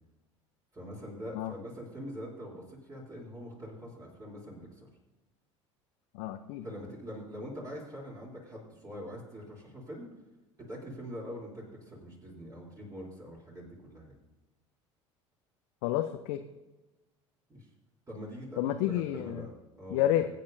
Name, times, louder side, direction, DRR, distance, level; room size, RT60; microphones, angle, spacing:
voice 1, 0.7-4.9 6.6-10.1 10.7-14.1 17.5-17.7 18.1-20.3, equal, 20° right, -4 dB, 3.3 m, -44 dB
voice 2, 6.1-6.6 15.8-16.4 18.6-19.4 19.9-20.3, left 12 dB, 65° left, 6 dB, 0.6 m, -29 dB
21.5 x 8.7 x 2.7 m, 1.1 s
figure-of-eight pair, 65°, 16 cm